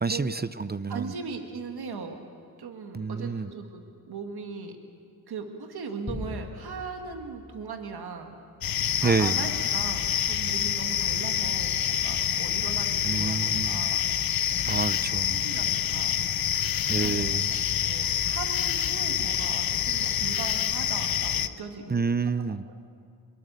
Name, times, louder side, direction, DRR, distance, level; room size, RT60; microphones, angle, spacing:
voice 1, 0.0-1.1 2.9-3.5 9.0-9.4 13.0-13.9 14.7-15.5 16.9-17.5 21.9-22.6, right 4 dB, 25° right, 14 dB, 0.7 m, -28 dB
voice 2, 0.9-2.2 2.6-4.8 5.3-8.4 9.0-14.0 14.5-14.8 15.3-16.2 17.0-22.0 22.5-22.6, right 5 dB, 90° right, 5 dB, 1.7 m, -39 dB
sound 1, 6.1-8.6, left 2 dB, 20° left, 5.0 m, -41 dB
sound 2, 8.6-21.5, left 9 dB, 70° left, 0.7 m, -27 dB
23.0 x 22.5 x 6.8 m, 2.3 s
cardioid pair, 55°, 37 cm